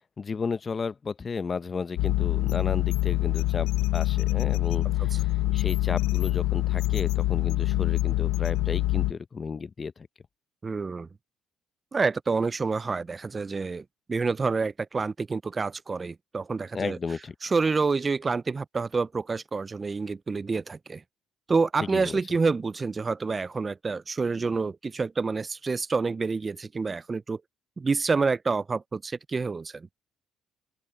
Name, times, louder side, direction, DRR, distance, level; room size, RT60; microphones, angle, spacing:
voice 1, 0.2-5.1 5.5-9.9 16.7-17.3 21.9-22.2, left 5 dB, 35° left, 0.6 m, -33 dB
sound 1, 2.0-9.1, left 16 dB, 85° left, 0.7 m, -25 dB
voice 2, 10.6-11.1 11.9-17.0 17.4-21.0 21.5-27.4 27.8-29.9, right 4 dB, 30° right, 0.3 m, -28 dB
open air
cardioid pair, 90°, 0 cm